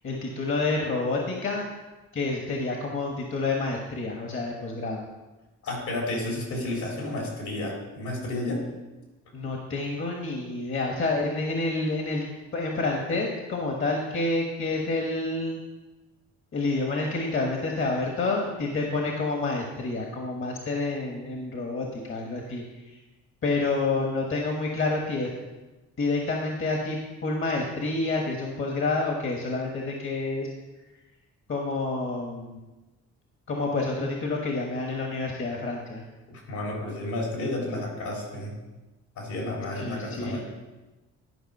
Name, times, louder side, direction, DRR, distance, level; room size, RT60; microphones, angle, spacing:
voice 1, 0.0-1.7 2.1-5.0 9.3-12.2 12.5-15.6 16.5-23.0 23.4-25.3 26.0-30.5 31.5-32.5 33.5-36.0 39.7-40.4, left 3 dB, 45° left, 0 dB, 1.4 m, -28 dB
voice 2, 5.6-8.6 36.3-38.5 39.2-40.4, left 1 dB, 75° left, -2 dB, 3.8 m, -31 dB
11.5 x 5.1 x 5.4 m, 1.1 s
cardioid pair, 90°, 30 cm